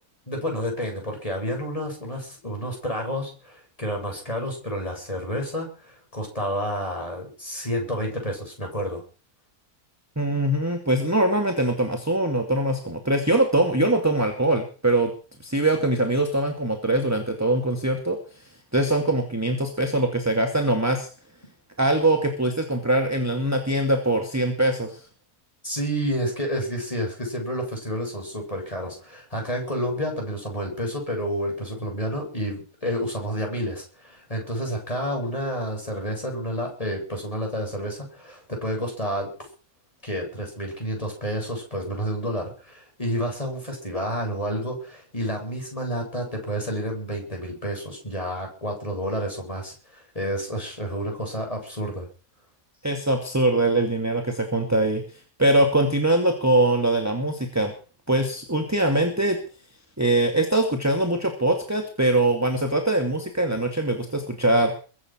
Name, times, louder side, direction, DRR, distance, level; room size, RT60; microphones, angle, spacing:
voice 1, 0.3-9.0 25.6-39.3 40.0-52.1, equal, 20° left, 1 dB, 7.9 m, -30 dB
voice 2, 10.2-15.1 15.4-18.2 18.7-21.1 21.8-25.0 52.8-55.0 55.4-57.7 58.1-59.4 60.0-64.7, right 1 dB, 10° right, 5 dB, 2.1 m, -22 dB
22.5 x 9.1 x 6.2 m, 0.38 s
omnidirectional pair, 1.6 m